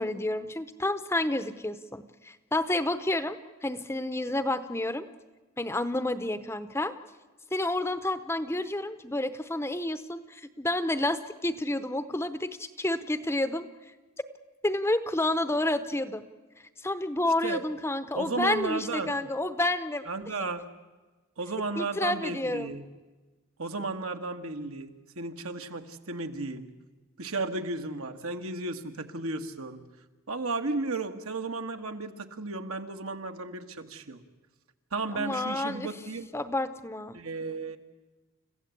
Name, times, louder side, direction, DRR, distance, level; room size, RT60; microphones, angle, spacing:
voice 1, 0.0-5.1 5.6-6.9 7.5-13.7 14.6-16.3 16.8-20.1 21.8-22.7 35.1-35.9 36.3-37.2, left 1 dB, 10° left, 12 dB, 0.7 m, -30 dB
voice 2, 18.1-19.2 20.1-20.6 21.4-22.8 23.6-26.7 27.2-29.8 30.3-34.2 34.9-36.3 37.1-37.8, right 3 dB, 75° right, 7 dB, 1.6 m, -34 dB
29.5 x 15.0 x 8.4 m, 1.2 s
head